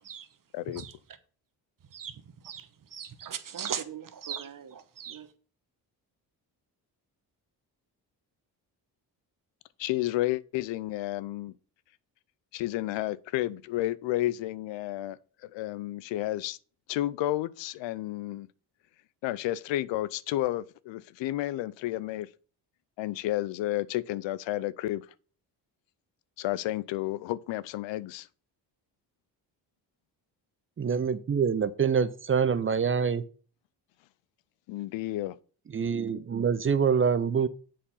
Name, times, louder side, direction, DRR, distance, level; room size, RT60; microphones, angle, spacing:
voice 1, 0.5-0.8 9.8-11.5 12.5-16.6 16.9-18.5 19.2-22.3 23.0-25.1 26.4-28.3 34.7-35.4, left 15 dB, 75° left, 0.6 m, -31 dB
voice 2, 2.9-5.2, right 8 dB, 45° right, 1.1 m, -38 dB
voice 3, 30.8-33.2 35.7-37.5, right 6 dB, 30° right, 0.5 m, -25 dB
7.5 x 4.3 x 5.5 m
supercardioid pair, 60°, 45 cm